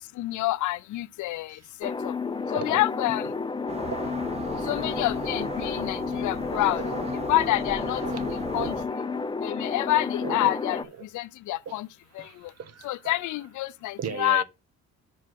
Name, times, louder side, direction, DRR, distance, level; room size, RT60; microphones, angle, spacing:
voice 1, 0.2-2.1 2.5-3.3 4.7-6.8 7.3-8.0 8.5-8.7 9.4-10.8 11.1-11.9 12.2-12.3 12.8-14.4, left 16 dB, 75° left, 0.5 m, -27 dB
sound 1, 1.8-10.8, left 4 dB, 15° left, 0.4 m, -31 dB
sound 2, 3.7-8.9, right 3 dB, 20° right, 1.1 m, -38 dB
voice 2, 3.9-4.8 5.6-5.8 6.5-7.3 7.9-9.1 9.5-9.6 10.2-11.1 11.7-11.8 12.2-13.1 14.0-14.4, right 8 dB, 55° right, 0.9 m, -38 dB
6.2 x 4.8 x 5.8 m
cardioid pair, 90°, 30 cm